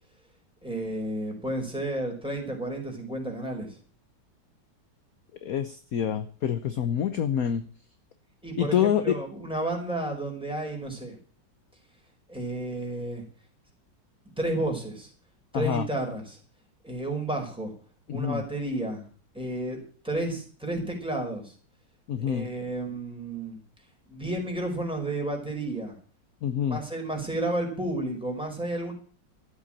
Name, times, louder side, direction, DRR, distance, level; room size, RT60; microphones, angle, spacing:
voice 1, 0.6-3.8 8.4-11.2 12.3-13.2 14.4-15.1 15.5-16.4 16.8-17.7 18.1-19.0 19.3-19.8 20.0-21.5 22.2-23.6 24.1-26.0 26.7-28.9, right 1 dB, 5° right, 1 dB, 5.0 m, -31 dB
voice 2, 5.4-7.6 8.6-9.2 15.5-15.9 18.1-18.4 22.1-22.5 26.4-26.8, left 9 dB, 55° left, 11 dB, 1.2 m, -26 dB
14.0 x 8.1 x 8.8 m, 0.42 s
omnidirectional pair, 2.0 m